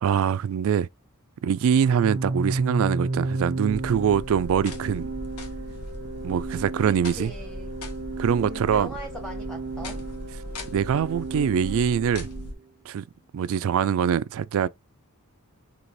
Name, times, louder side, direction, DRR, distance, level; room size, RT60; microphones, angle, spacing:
voice 1, 0.0-0.9 1.4-5.1 6.2-7.3 8.2-8.9 10.7-12.3 12.9-13.0 13.3-14.7, right 8 dB, 65° right, 0.3 m, -23 dB
Organ, 1.8-12.5, right 2 dB, 40° right, 0.8 m, -33 dB
sound 1, 3.7-12.5, equal, 85° left, 0.9 m, -38 dB
voice 2, 6.9-7.7 8.3-10.1, equal, 5° left, 0.6 m, -40 dB
3.9 x 2.9 x 3.1 m
head